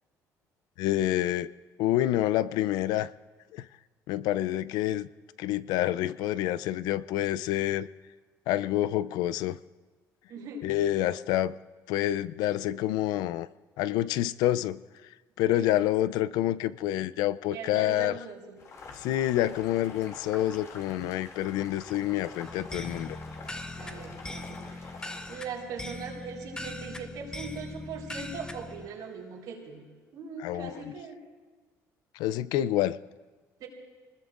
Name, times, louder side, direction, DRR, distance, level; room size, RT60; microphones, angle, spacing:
voice 1, 0.8-1.5 1.8-3.1 3.5-3.7 4.1-5.1 5.4-7.9 8.5-9.6 10.6-11.5 11.9-13.5 13.8-14.8 15.4-18.2 19.0-23.2 30.4-30.8 32.2-33.0, left 13 dB, 90° left, 16 dB, 0.4 m, -28 dB
voice 2, 10.3-10.7 15.5-15.9 17.5-18.6 23.7-25.0 25.3-29.9 30.1-31.2 33.6-33.7, right 5 dB, 80° right, -3 dB, 4.2 m, -40 dB
Boiling, 18.6-25.4, left 4 dB, 50° left, 2.6 m, -46 dB
sound 1, 22.4-28.9, left 2 dB, 10° left, 0.9 m, -41 dB
25.5 x 20.5 x 2.5 m, 1.4 s
cardioid pair, 105°, 7 cm